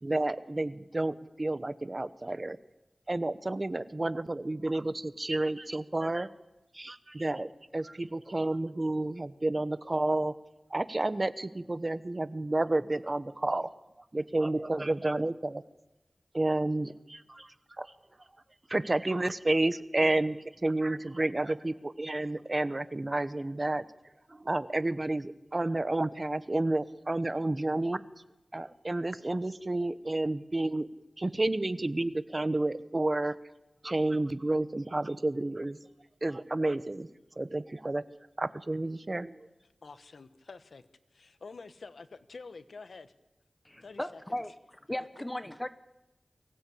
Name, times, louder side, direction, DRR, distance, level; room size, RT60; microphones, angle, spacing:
voice 1, 0.0-2.6 3.1-6.3 6.7-10.3 10.7-13.7 14.1-15.6 16.3-17.9 18.7-23.8 24.3-28.0 28.5-30.9 31.2-33.3 33.8-35.8 36.2-37.1 37.4-38.0 38.4-39.4, right 2 dB, 40° right, 14 dB, 1.0 m, -30 dB
voice 2, 39.8-43.1 43.8-44.4, left 4 dB, 90° left, 11 dB, 1.0 m, -48 dB
voice 3, 43.6-44.5 44.9-45.7, left 1 dB, 15° left, 12 dB, 1.0 m, -36 dB
23.5 x 16.0 x 8.6 m, 0.99 s
wide cardioid pair, 50°, 0 cm